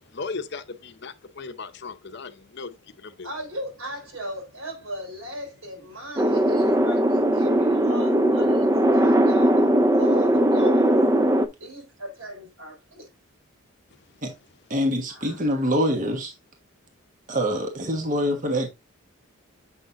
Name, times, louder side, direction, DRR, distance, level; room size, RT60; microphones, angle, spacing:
voice 1, 0.1-3.3, left 4 dB, 55° left, 0.7 m, -37 dB
voice 2, 3.2-11.0 11.6-13.1 15.1-15.4, equal, 85° right, 4.0 m, -38 dB
sound 1, 6.2-11.5, right 1 dB, 15° right, 0.4 m, -19 dB
voice 3, 14.7-16.3 17.3-18.7, equal, 40° right, 1.2 m, -25 dB
7.3 x 6.3 x 2.6 m
head